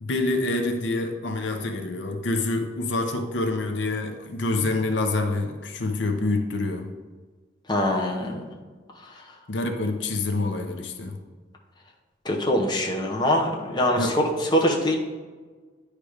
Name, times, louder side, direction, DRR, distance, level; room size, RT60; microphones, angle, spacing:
voice 1, 0.0-6.9 9.5-11.2 14.0-14.2, left 2 dB, 80° left, 5 dB, 0.7 m, -26 dB
voice 2, 7.7-8.4 12.2-14.2 14.5-15.0, left 1 dB, 25° left, -1 dB, 0.9 m, -23 dB
9.6 x 3.3 x 4.9 m, 1.4 s
head